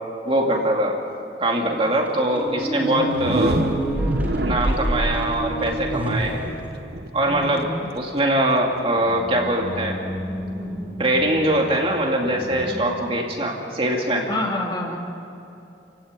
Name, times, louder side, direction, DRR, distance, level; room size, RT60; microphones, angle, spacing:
voice 1, 0.2-1.0 1.4-3.6 4.4-6.4 7.1-7.7 8.0-10.0 11.0-14.3, right 1 dB, 30° right, 0 dB, 2.4 m, -22 dB
sound 1, 2.1-7.2 8.1-8.2 8.9-12.9, right 1 dB, 10° right, 3.7 m, -30 dB
voice 2, 2.7-3.1 7.3-7.9 14.3-15.0, left 1 dB, 25° left, -1 dB, 3.0 m, -28 dB
sound 2, 3.1-8.9, right 1 dB, 55° right, 1.1 m, -27 dB
29.0 x 16.5 x 9.1 m, 2.7 s
head